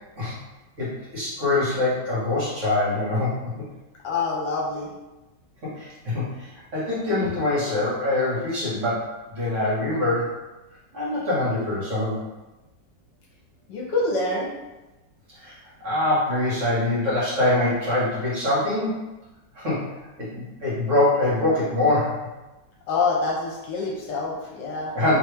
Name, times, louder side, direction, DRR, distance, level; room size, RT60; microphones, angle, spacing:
voice 1, 0.8-3.7 5.6-10.3 10.9-12.2 15.4-15.5 15.8-19.1 19.5-19.9 20.2-22.2 24.9-25.2, left 2 dB, 45° right, -9 dB, 1.7 m, -24 dB
voice 2, 4.0-4.9 13.7-14.5 22.9-24.9, left 3 dB, 70° left, -2 dB, 1.3 m, -26 dB
3.3 x 3.2 x 3.3 m, 1.1 s
omnidirectional pair, 2.0 m